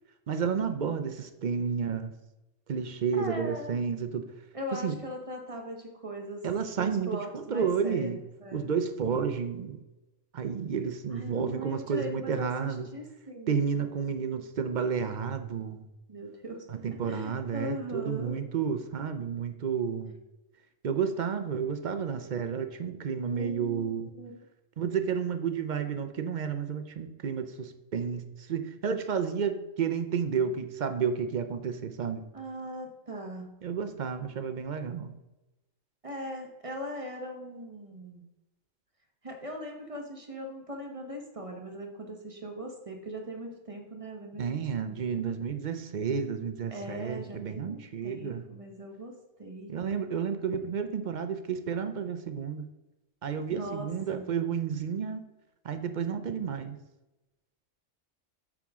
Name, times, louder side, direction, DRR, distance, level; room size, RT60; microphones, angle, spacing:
voice 1, 0.3-2.1 2.7-4.3 4.7-5.0 6.4-8.2 8.5-9.8 10.3-12.9 13.5-15.8 16.7-20.2 20.8-24.1 24.8-32.3 33.6-35.1 44.4-48.5 49.7-52.7 53.2-55.2 55.6-56.8, right 6 dB, 50° right, 9 dB, 0.6 m, -31 dB
voice 2, 3.2-3.8 4.5-6.5 6.8-8.1 8.4-8.7 11.1-13.6 16.1-18.4 23.3-24.4 32.3-33.5 36.0-38.2 39.2-44.6 44.9-45.2 46.7-49.1 49.4-49.7 53.5-54.3, equal, 30° right, 2 dB, 1.1 m, -40 dB
8.6 x 6.0 x 3.6 m, 0.99 s
omnidirectional pair, 1.3 m